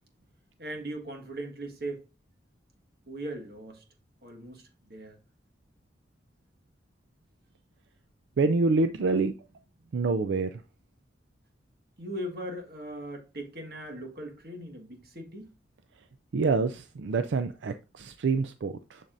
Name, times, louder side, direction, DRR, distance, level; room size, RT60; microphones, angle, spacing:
voice 1, 0.6-2.0 3.1-3.8 4.2-5.2 12.0-15.5, right 1 dB, 55° right, 1.6 m, -39 dB
voice 2, 8.4-9.3 9.9-10.5 16.3-19.0, right 4 dB, 85° right, 0.4 m, -26 dB
7.2 x 6.8 x 2.6 m
head